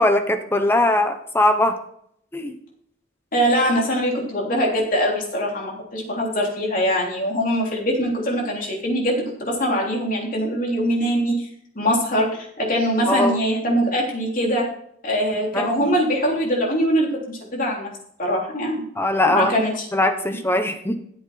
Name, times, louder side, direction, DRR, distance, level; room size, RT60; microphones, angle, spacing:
voice 1, 0.0-1.8 2.3-2.5 13.1-13.4 15.5-15.8 19.0-19.5 19.9-21.0, left 1 dB, 10° left, 7 dB, 0.9 m, -20 dB
voice 2, 3.3-11.5 11.8-14.7 15.0-17.9 18.2-18.8 19.2-19.9 20.3-20.4, equal, 45° left, -2 dB, 3.5 m, -22 dB
14.0 x 7.7 x 4.3 m, 0.68 s
head